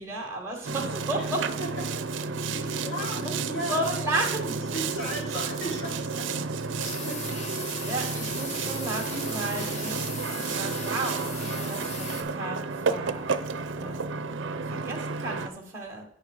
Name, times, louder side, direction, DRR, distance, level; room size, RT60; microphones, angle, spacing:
voice 1, 0.0-1.4 2.4-3.3 3.7-4.5 7.9-13.2 13.8-14.4 14.8-16.0, right 2 dB, 15° right, -1 dB, 1.5 m, -34 dB
Boat Water vehicle, 0.6-15.5, right 4 dB, 70° right, 0.5 m, -31 dB
voice 2, 2.5-3.8 4.6-7.3, equal, 75° left, -5 dB, 3.6 m, -36 dB
sound 1, 6.8-12.2, left 2 dB, 35° left, 1.1 m, -38 dB
9.3 x 5.5 x 4.8 m, 0.72 s
head